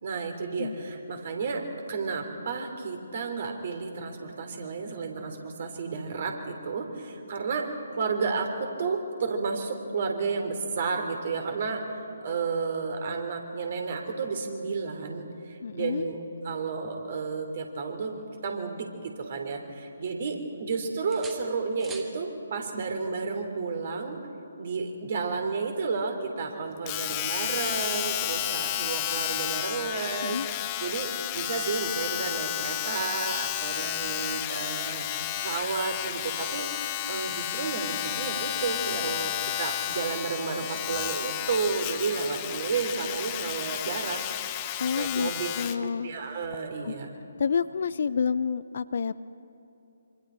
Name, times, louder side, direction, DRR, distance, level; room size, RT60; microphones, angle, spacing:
voice 1, 0.0-1.6 1.9-11.8 12.2-24.2 24.6-35.0 35.4-36.7 37.1-44.2 44.9-45.5 45.8-47.2, right 4 dB, 45° right, 4 dB, 3.1 m, -32 dB
voice 2, 15.6-16.1 30.2-30.5 44.8-45.3 45.6-46.1 46.8-46.9 47.4-49.1, left 6 dB, 50° left, 16 dB, 0.5 m, -28 dB
sound 1, 18.0-19.5 19.9-20.7 21.1-22.2 24.0-24.2, right 5 dB, 10° right, 1.6 m, -49 dB
Domestic sounds home sounds, 26.9-45.8 46.5-46.6, left 13 dB, 25° left, 0.9 m, -32 dB
26.0 x 25.0 x 4.5 m, 2.8 s
figure-of-eight pair, 140°, 0 cm